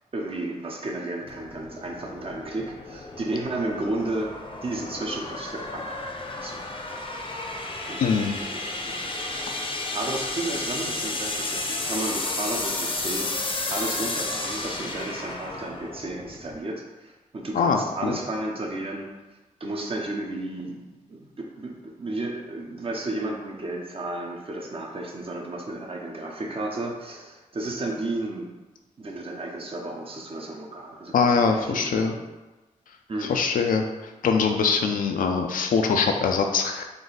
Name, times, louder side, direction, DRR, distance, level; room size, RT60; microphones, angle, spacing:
voice 1, 0.1-4.3 4.6-5.9 6.4-6.7 7.9-13.3 13.7-19.1 19.6-28.5 29.0-32.2 33.1-33.4, right 2 dB, 40° right, 0 dB, 0.8 m, -33 dB
sound 1, 1.2-16.6, left 2 dB, 40° left, 0.7 m, -32 dB
voice 2, 8.0-8.5 17.5-18.2 31.1-32.1 33.3-33.8 34.2-36.8, left 5 dB, 80° left, 4 dB, 0.5 m, -23 dB
3.9 x 2.6 x 3.9 m, 1.1 s
cardioid pair, 70°, 14 cm